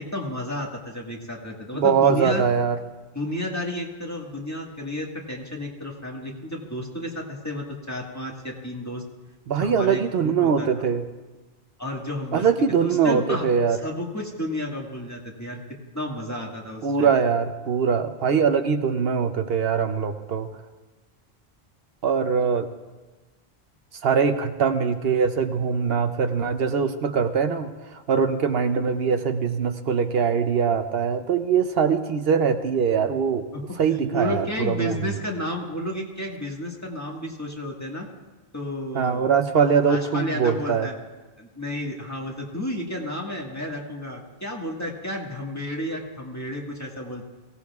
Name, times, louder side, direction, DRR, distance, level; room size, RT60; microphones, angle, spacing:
voice 1, 0.0-2.4 3.1-9.0 9.5-10.7 11.8-12.5 12.8-15.6 15.9-17.1 33.5-33.8 34.1-38.1 38.5-39.3 39.8-40.9 41.4-47.2, left 1 dB, 15° left, -1 dB, 1.7 m, -32 dB
voice 2, 1.7-2.8 9.5-11.0 12.3-13.8 16.8-20.5 22.0-22.7 24.0-27.7 28.1-33.4 33.8-35.0 39.0-40.9, right 6 dB, 75° right, 8 dB, 0.9 m, -22 dB
23.0 x 16.5 x 2.4 m, 1.2 s
omnidirectional pair, 1.0 m